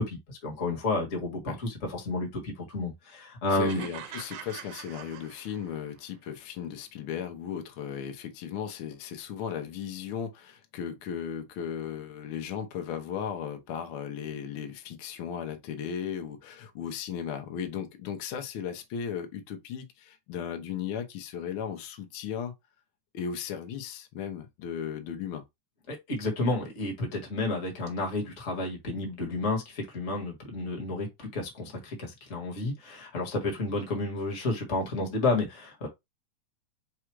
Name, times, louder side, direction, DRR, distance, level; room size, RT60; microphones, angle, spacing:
voice 1, 0.0-3.8 25.9-35.9, left 2 dB, 35° left, 1.2 m, -31 dB
voice 2, 3.5-22.5 23.1-25.4, left 8 dB, 75° left, 1.2 m, -36 dB
sound 1, 3.7-6.0, right 9 dB, 80° right, 2.0 m, -44 dB
4.9 x 2.3 x 4.6 m
omnidirectional pair, 3.5 m